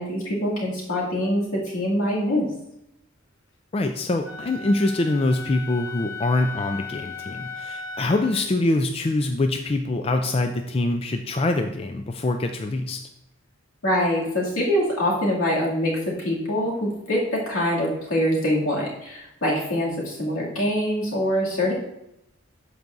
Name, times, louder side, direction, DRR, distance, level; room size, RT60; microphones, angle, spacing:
voice 1, 0.0-2.5 13.8-21.7, equal, 85° left, -5 dB, 2.4 m, -24 dB
voice 2, 3.7-13.0, left 2 dB, 25° left, 6 dB, 0.3 m, -24 dB
Wind instrument woodwind instrument, 4.2-8.4, left 4 dB, 65° left, 1.2 m, -36 dB
12.0 x 4.7 x 2.6 m, 0.83 s
head